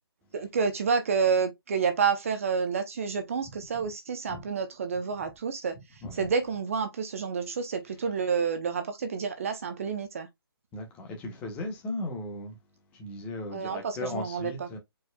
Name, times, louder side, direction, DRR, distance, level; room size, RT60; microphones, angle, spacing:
voice 1, 0.3-5.8 6.1-10.3 13.5-14.7, right 6 dB, 35° right, 0.7 m, -29 dB
voice 2, 10.7-12.6 12.9-14.8, left 2 dB, 10° left, 1.0 m, -37 dB
4.7 x 4.5 x 2.2 m
hypercardioid pair, 165°, 13 cm